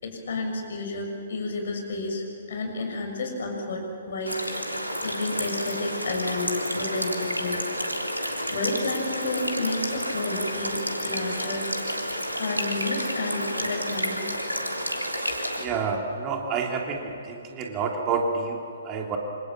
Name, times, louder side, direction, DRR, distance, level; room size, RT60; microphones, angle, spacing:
voice 1, 0.0-7.6 8.0-11.7 12.0-14.3, left 2 dB, 50° left, 3 dB, 6.6 m, -31 dB
sound 1, 4.3-15.7, equal, 85° right, 3.3 m, -30 dB
voice 2, 15.6-19.2, right 5 dB, 25° right, 1 dB, 2.8 m, -29 dB
27.0 x 26.0 x 7.5 m, 2.7 s
figure-of-eight pair, 125°, 0 cm